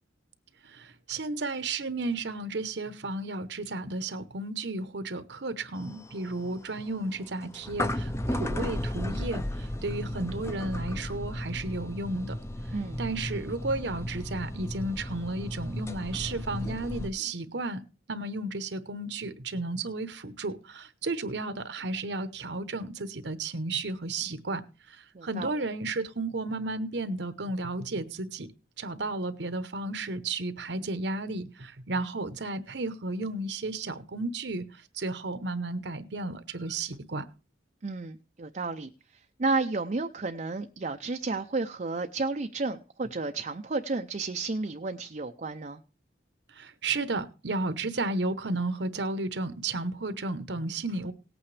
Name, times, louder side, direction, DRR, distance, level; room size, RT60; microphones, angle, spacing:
voice 1, 0.6-12.4 12.6-17.8 18.1-28.5 28.8-37.3 46.5-51.1, right 2 dB, 65° right, 0.9 m, -33 dB
sound 1, 5.8-17.1, left 1 dB, 15° left, 0.6 m, -35 dB
voice 2, 25.1-25.5 37.8-38.9 39.4-45.8, right 3 dB, 40° right, 0.5 m, -32 dB
18.0 x 8.7 x 3.3 m
head